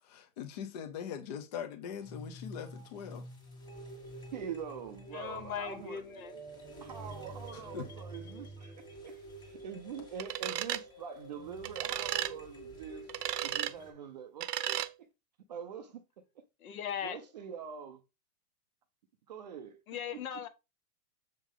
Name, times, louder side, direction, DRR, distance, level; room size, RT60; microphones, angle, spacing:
voice 1, 0.0-3.2 7.5-7.9, left 8 dB, 25° left, 0.6 m, -41 dB
sound 1, 1.9-13.9, right 1 dB, 10° left, 1.7 m, -48 dB
voice 2, 4.3-6.0 6.8-13.1 13.4-14.9 15.5-16.0 17.0-18.0 19.3-19.8, right 7 dB, 30° right, 0.5 m, -44 dB
voice 3, 5.1-6.3 16.6-17.2 19.9-20.5, left 8 dB, 60° left, 1.5 m, -38 dB
sound 2, 10.2-10.8 11.6-12.3 13.1-13.7 14.4-14.9, right 12 dB, 80° right, 0.9 m, -34 dB
7.4 x 5.4 x 3.6 m
supercardioid pair, 170°, 47 cm